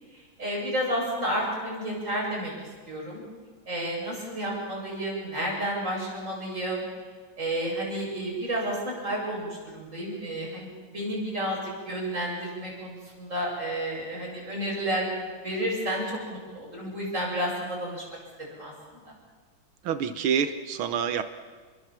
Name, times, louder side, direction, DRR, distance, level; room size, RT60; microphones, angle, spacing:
voice 1, 0.1-2.5 2.9-3.2 3.7-6.8 7.4-18.0 18.4-19.0, right 1 dB, 35° right, -3 dB, 8.6 m, -31 dB
voice 2, 19.9-21.2, right 7 dB, 85° right, 10 dB, 1.9 m, -27 dB
28.5 x 23.0 x 7.5 m, 1.5 s
omnidirectional pair, 2.2 m